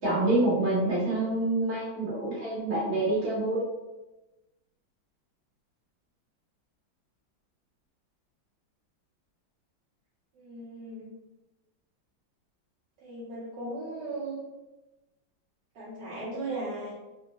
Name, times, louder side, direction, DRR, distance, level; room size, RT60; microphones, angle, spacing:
voice 1, 0.0-3.6, right 2 dB, 40° right, -8 dB, 1.2 m, -27 dB
voice 2, 10.3-11.1 13.0-14.4 15.7-17.0, right 2 dB, 70° right, -8 dB, 1.3 m, -37 dB
3.5 x 2.1 x 2.8 m, 1.1 s
omnidirectional pair, 2.1 m